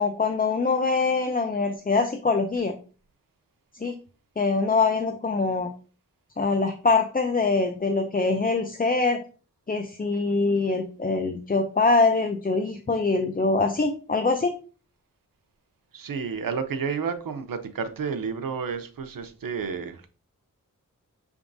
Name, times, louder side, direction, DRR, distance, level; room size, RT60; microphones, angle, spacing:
voice 1, 0.0-2.8 3.8-4.0 4.4-5.7 6.4-9.2 9.7-14.5, left 3 dB, 25° left, 0.5 m, -24 dB
voice 2, 15.9-20.1, right 6 dB, 85° right, 0.6 m, -31 dB
5.9 x 3.5 x 2.6 m
wide cardioid pair, 60°, 33 cm